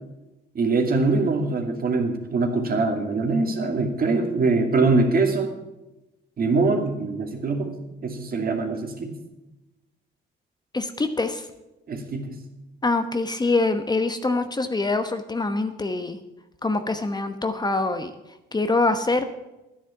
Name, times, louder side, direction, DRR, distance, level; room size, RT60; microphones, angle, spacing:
voice 1, 0.5-5.5 6.4-7.7 8.0-9.1 11.9-12.4, right 3 dB, 50° right, 3 dB, 2.5 m, -23 dB
voice 2, 10.7-11.5 12.8-16.2 16.6-18.1 18.5-19.3, left 3 dB, 20° left, 8 dB, 1.0 m, -24 dB
11.5 x 9.9 x 7.0 m, 0.99 s
cardioid pair, 90°, 20 cm